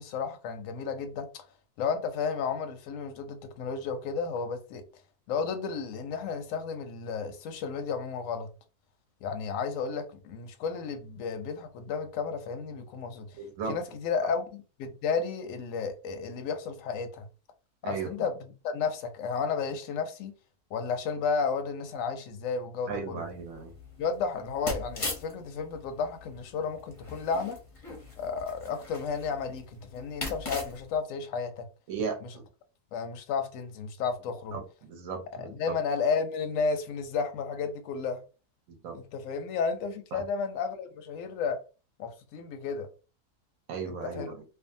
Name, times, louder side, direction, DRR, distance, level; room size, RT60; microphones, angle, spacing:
voice 1, 0.0-1.5 1.8-4.8 5.3-8.5 9.2-13.4 13.7-17.3 17.8-20.3 20.7-23.2 24.0-27.6 28.2-31.7 32.2-32.3 32.9-34.6 35.4-38.2 38.9-41.6 42.0-42.9 43.9-44.3, left 5 dB, 70° left, 0.8 m, -32 dB
voice 2, 13.4-13.8 17.8-18.3 22.9-23.7 31.9-32.4 34.5-35.7 38.7-39.0 40.1-40.2 43.7-44.4, right 5 dB, 70° right, 1.0 m, -36 dB
sound 1, 23.2-31.0, left 2 dB, 35° left, 0.6 m, -41 dB
2.6 x 2.4 x 2.6 m
omnidirectional pair, 1.7 m